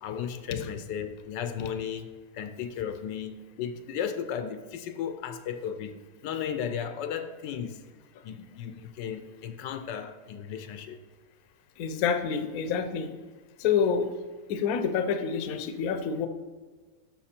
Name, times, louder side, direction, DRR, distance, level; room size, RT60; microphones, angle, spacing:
voice 1, 0.0-2.1 2.3-5.9 6.2-7.8 8.2-11.0, left 8 dB, 80° left, 10 dB, 1.3 m, -35 dB
voice 2, 11.8-13.1 13.6-14.1 14.5-16.3, left 6 dB, 65° left, 8 dB, 1.1 m, -27 dB
12.5 x 5.9 x 4.4 m, 1.4 s
omnidirectional pair, 1.9 m